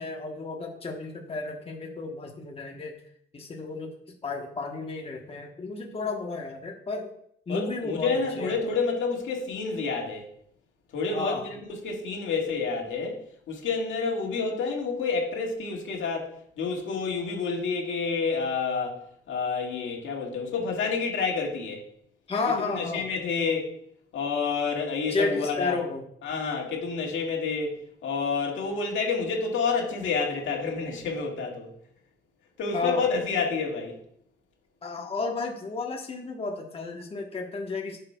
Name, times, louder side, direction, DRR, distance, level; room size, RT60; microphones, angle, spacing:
voice 1, 0.0-2.9 3.3-3.9 4.2-7.1 7.5-8.1 8.4-8.6 11.1-11.5 22.3-23.1 25.1-26.0 32.7-33.1 34.8-38.0, left 3 dB, 30° left, 1 dB, 1.0 m, -32 dB
voice 2, 7.5-10.3 10.9-13.2 13.5-21.9 22.6-23.8 24.1-25.8 26.2-27.8 28.0-31.7 32.6-34.0, left 4 dB, 75° left, 0 dB, 1.9 m, -29 dB
10.5 x 6.6 x 2.2 m, 0.69 s
cardioid pair, 90°, 20 cm